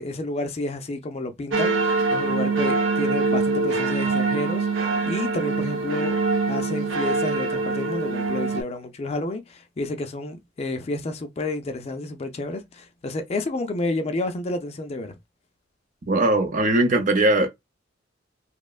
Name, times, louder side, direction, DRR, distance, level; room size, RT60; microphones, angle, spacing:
voice 1, 0.0-6.2 6.5-15.1, left 2 dB, 35° left, 0.4 m, -30 dB
sound 1, 1.5-8.6, right 3 dB, 85° right, 0.7 m, -24 dB
voice 2, 16.1-17.5, right 2 dB, 45° right, 0.6 m, -20 dB
2.9 x 2.1 x 2.3 m
head